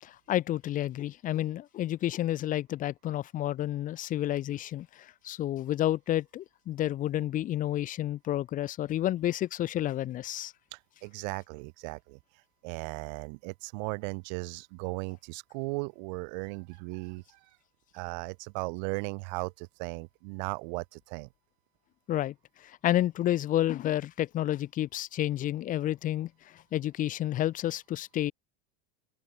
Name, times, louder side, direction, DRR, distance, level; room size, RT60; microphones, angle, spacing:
voice 1, 0.0-10.5 22.1-22.3 22.6-28.3, left 13 dB, 20° left, 0.8 m, -30 dB
voice 2, 10.7-17.6 17.9-21.3, right 33 dB, 40° right, 0.4 m, -37 dB
supercardioid pair, 170°, 36 cm